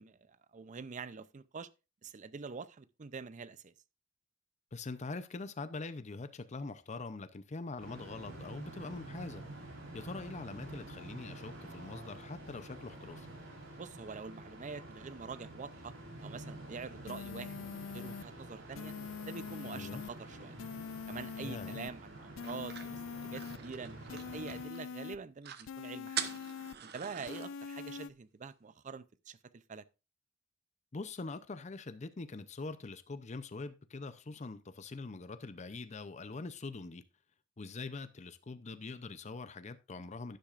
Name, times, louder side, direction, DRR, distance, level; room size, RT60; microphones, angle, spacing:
voice 1, 0.0-1.7 2.0-3.7 13.8-15.9 16.2-18.9 19.3-20.5 21.1-26.3 26.8-29.8, right 5 dB, 40° right, 0.5 m, -45 dB
voice 2, 4.7-9.4 9.9-13.3 19.7-20.0 21.4-21.8 30.9-37.0 37.6-40.4, left 3 dB, 35° left, 0.6 m, -43 dB
sound 1, 7.8-24.7, right 1 dB, 80° right, 4.2 m, -49 dB
sound 2, 17.1-18.2 18.7-20.1 20.6-21.9 22.4-23.6 24.1-25.2 25.7-26.8 27.3-28.1, left 6 dB, 80° left, 0.4 m, -43 dB
sound 3, 22.4-24.8 25.1-25.2 25.4-25.7 26.1-27.5, right 9 dB, 55° right, 0.9 m, -42 dB
11.5 x 10.5 x 2.5 m
head